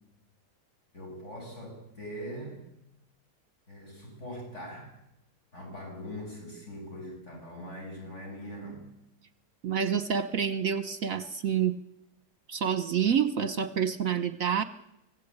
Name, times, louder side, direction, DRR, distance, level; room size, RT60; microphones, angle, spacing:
voice 1, 0.9-2.7 3.7-5.0 5.5-8.9, equal, 45° left, 1 dB, 7.9 m, -42 dB
voice 2, 9.6-11.8 12.5-14.6, right 7 dB, 55° right, 13 dB, 1.3 m, -28 dB
25.5 x 16.5 x 8.8 m, 0.85 s
omnidirectional pair, 1.8 m